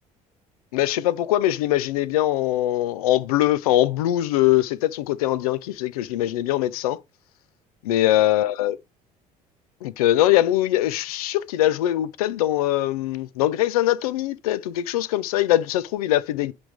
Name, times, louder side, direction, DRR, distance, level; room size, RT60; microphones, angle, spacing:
voice 1, 0.7-7.0 7.9-8.8 9.8-16.5, left 14 dB, 70° left, 0.5 m, -22 dB
8.4 x 3.4 x 5.1 m
figure-of-eight pair, 60°, 20 cm